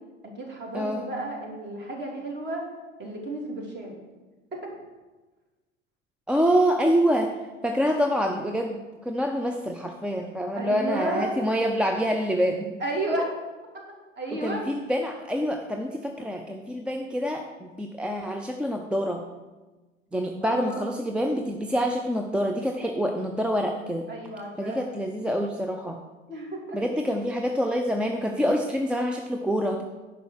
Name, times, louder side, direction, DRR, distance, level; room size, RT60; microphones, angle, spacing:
voice 1, 0.2-2.6 3.0-4.0 4.5-4.7 10.5-11.3 12.8-13.3 14.2-14.6 20.4-20.9 24.1-24.9 26.3-26.8, right 1 dB, 30° right, 0 dB, 3.1 m, -32 dB
voice 2, 6.3-7.3 7.6-12.7 14.3-19.2 20.1-24.1 24.6-26.0 26.7-29.8, equal, 5° right, 3 dB, 0.5 m, -26 dB
10.0 x 5.6 x 6.6 m, 1.2 s
figure-of-eight pair, 80°, 37 cm